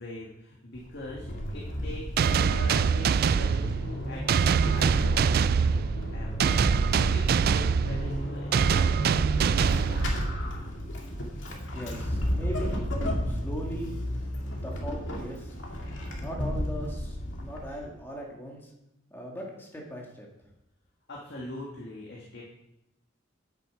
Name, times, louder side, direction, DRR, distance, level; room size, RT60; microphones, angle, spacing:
voice 1, 0.0-10.3 21.1-22.4, left 2 dB, 55° left, -3 dB, 1.8 m, -43 dB
Vehicle / Accelerating revving vroom / Squeak, 0.8-18.0, equal, 70° left, 2.2 m, -33 dB
sound 1, 2.2-10.6, right 6 dB, 50° right, 0.3 m, -24 dB
voice 2, 11.7-12.8 13.3-15.6 16.2-18.7 19.1-20.3, equal, 10° left, -2 dB, 2.1 m, -39 dB
10.0 x 8.9 x 5.1 m, 0.86 s
head